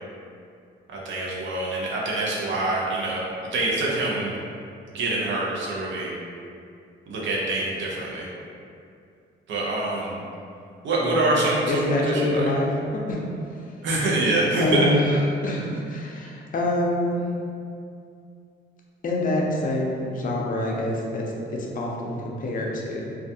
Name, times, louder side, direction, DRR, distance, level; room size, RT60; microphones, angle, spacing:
voice 1, 0.9-4.3 4.9-6.1 7.1-8.2 9.5-10.2 10.8-12.5 13.8-14.6, right 2 dB, 70° right, -4 dB, 0.6 m, -25 dB
voice 2, 11.0-13.2 14.6-17.2 19.0-23.1, left 1 dB, 45° left, -2 dB, 0.5 m, -26 dB
2.3 x 2.2 x 2.7 m, 2.4 s
cardioid pair, 90°, 20 cm